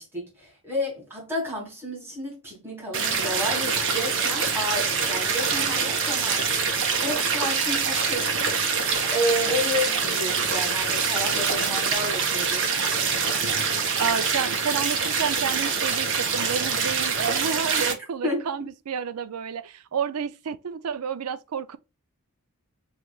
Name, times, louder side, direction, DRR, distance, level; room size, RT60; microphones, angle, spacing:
voice 1, 0.0-12.6 18.2-18.7, left 1 dB, 10° right, 2.5 m, -31 dB
sound 1, 2.9-17.9, right 5 dB, 60° right, 1.1 m, -25 dB
voice 2, 14.0-21.8, right 7 dB, 85° right, 0.5 m, -30 dB
5.6 x 3.2 x 2.3 m
head